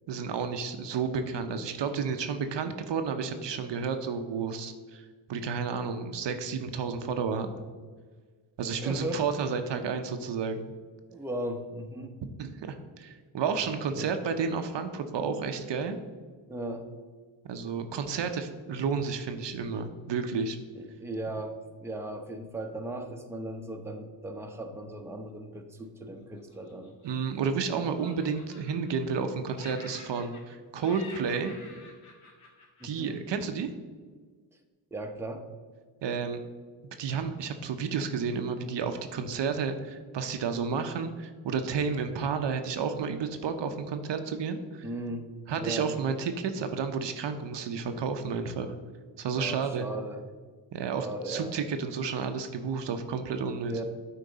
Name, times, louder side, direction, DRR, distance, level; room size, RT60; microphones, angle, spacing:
voice 1, 0.1-7.7 8.6-10.7 12.2-16.0 17.4-20.6 27.0-31.5 32.8-33.7 36.0-36.4 37.0-44.8 45.5-48.7 49.2-49.9 50.7-53.8, right 5 dB, 60° right, 7 dB, 0.7 m, -31 dB
voice 2, 8.8-9.2 11.1-12.1 13.6-14.2 16.5-16.9 20.8-26.9 32.8-33.2 34.9-35.5 44.8-45.9 49.4-50.2 51.0-51.6 53.7-53.8, right 1 dB, 5° right, 4 dB, 0.8 m, -37 dB
Laughter, 26.4-27.6 27.9-29.3 29.5-30.6 30.8-33.4, left 3 dB, 70° left, 1.6 m, -50 dB
8.4 x 4.5 x 4.0 m, 1.5 s
supercardioid pair, 60°, 50 cm